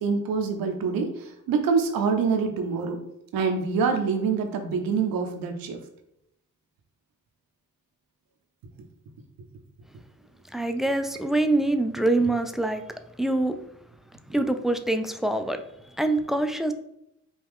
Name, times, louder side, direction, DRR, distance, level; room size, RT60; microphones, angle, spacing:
voice 1, 0.0-3.0 3.3-5.8, right 5 dB, 85° right, 5 dB, 0.8 m, -25 dB
voice 2, 10.5-12.8 13.2-13.6 14.3-15.6 16.0-16.7, right 2 dB, ahead, 8 dB, 0.3 m, -24 dB
5.2 x 2.3 x 3.5 m, 0.80 s
cardioid pair, 75°, 34 cm